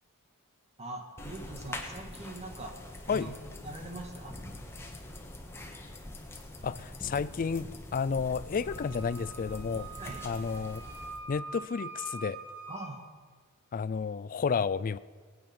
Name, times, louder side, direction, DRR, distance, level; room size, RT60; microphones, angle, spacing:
voice 1, 0.8-2.8 3.1-3.4 3.6-4.4 10.0-10.3 12.7-13.0, right 2 dB, 30° right, 4 dB, 1.8 m, -42 dB
sound 1, 1.2-11.2, left 1 dB, 10° left, 1.5 m, -44 dB
voice 2, 6.6-9.9 10.2-10.8 11.3-12.4 13.7-15.0, left 5 dB, 40° left, 17 dB, 0.4 m, -31 dB
Wind instrument woodwind instrument, 8.6-12.9, right 2 dB, 80° right, 4.2 m, -44 dB
19.5 x 9.3 x 6.0 m, 1.5 s
head